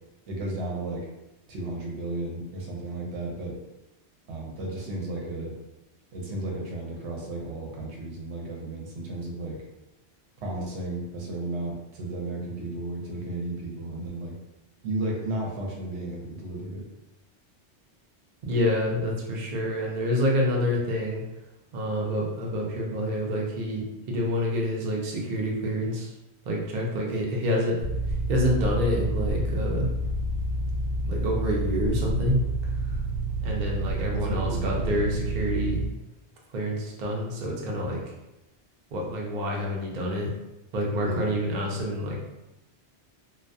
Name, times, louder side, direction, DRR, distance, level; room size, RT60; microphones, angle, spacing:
voice 1, 0.3-1.1 1.5-3.6 4.3-5.5 6.1-9.6 10.4-14.4 14.8-16.9 34.1-35.1 41.0-41.3, right 2 dB, 75° right, -1 dB, 0.9 m, -33 dB
voice 2, 18.4-21.2 21.7-26.1 26.5-27.7 28.3-29.9 31.0-32.4 33.4-35.8 36.5-38.0 38.9-40.3 40.7-42.2, equal, 55° right, -2 dB, 0.5 m, -27 dB
sound 1, 27.8-35.9, right 2 dB, 65° left, 0.8 m, -29 dB
2.2 x 2.2 x 2.5 m, 0.95 s
omnidirectional pair, 1.2 m